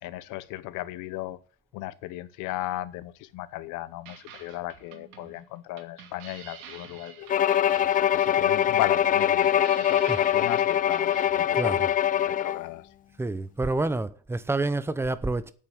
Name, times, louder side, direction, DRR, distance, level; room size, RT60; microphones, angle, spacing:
voice 1, 0.0-1.4 1.7-7.5 7.9-12.9, left 16 dB, 80° left, 1.0 m, -36 dB
sound 1, 4.1-11.9, right 7 dB, 80° right, 2.5 m, -48 dB
Bowed string instrument, 7.3-12.7, left 10 dB, 30° left, 0.4 m, -23 dB
voice 2, 11.5-11.9 13.2-15.5, right 2 dB, 10° right, 0.7 m, -28 dB
9.0 x 8.7 x 6.5 m
cardioid pair, 135°, 30 cm